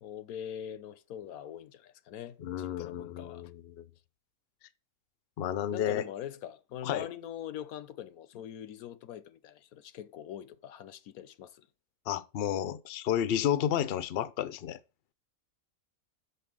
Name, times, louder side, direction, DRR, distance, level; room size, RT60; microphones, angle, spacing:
voice 1, 0.0-3.5 5.7-11.7, left 10 dB, 85° left, 1.2 m, -43 dB
voice 2, 2.4-3.9 5.4-6.0 6.8-7.1 12.1-14.8, left 10 dB, 55° left, 0.8 m, -31 dB
6.5 x 5.6 x 6.2 m
omnidirectional pair, 1.5 m